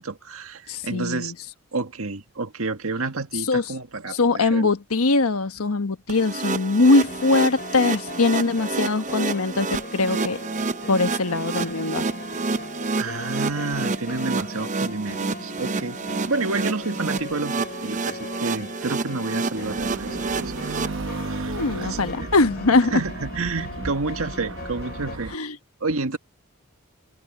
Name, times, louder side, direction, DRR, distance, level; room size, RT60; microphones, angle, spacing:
voice 1, 0.0-1.3 1.7-4.7 13.0-16.0 16.3-20.2 20.4-20.9 21.3-22.3 22.9-25.3 25.8-26.2, right 3 dB, 75° right, 1.8 m, -30 dB
voice 2, 0.7-1.3 3.5-3.6 4.1-10.4 10.9-12.0 21.5-22.9 25.3-25.5, left 3 dB, 85° left, 1.3 m, -21 dB
sound 1, 6.1-20.9, right 4 dB, 35° right, 0.6 m, -29 dB
sound 2, 6.8-25.2, left 3 dB, 45° left, 2.8 m, -40 dB
sound 3, 19.5-25.3, right 3 dB, 60° right, 0.9 m, -34 dB
head